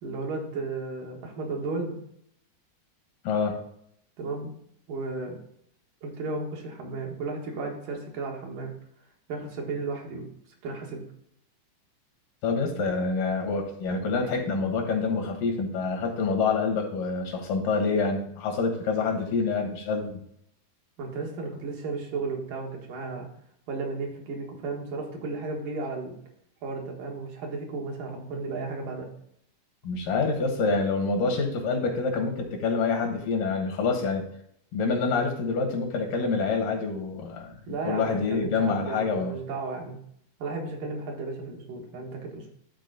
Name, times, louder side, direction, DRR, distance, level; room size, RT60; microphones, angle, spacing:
voice 1, 0.0-2.0 4.2-4.5 4.9-5.4 6.0-8.7 9.3-10.3 10.6-11.0 21.0-23.3 23.7-26.2 26.6-29.1 37.7-40.0 40.4-42.5, right 3 dB, 85° right, 0 dB, 3.3 m, -34 dB
voice 2, 3.2-3.6 12.4-20.2 29.8-34.2 34.7-37.6 37.9-39.4, left 4 dB, 90° left, 3 dB, 3.2 m, -27 dB
11.5 x 4.4 x 4.0 m, 0.71 s
omnidirectional pair, 3.7 m